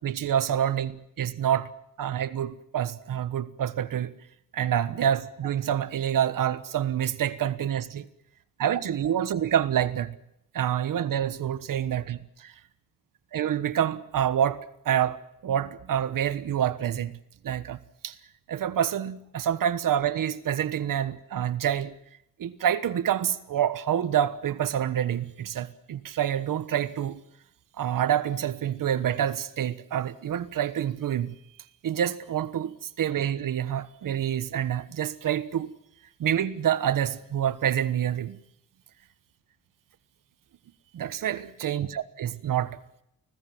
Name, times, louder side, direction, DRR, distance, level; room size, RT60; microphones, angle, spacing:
voice 1, 0.0-1.7 2.0-4.1 4.5-8.1 8.6-10.2 10.5-12.5 13.3-17.1 17.4-17.8 18.0-18.2 18.5-22.0 22.4-27.2 27.8-31.3 31.8-35.7 36.2-38.4 40.9-42.8, right 10 dB, 70° right, 1.3 m, -27 dB
30.0 x 20.0 x 7.8 m
wide cardioid pair, 150°, 34 cm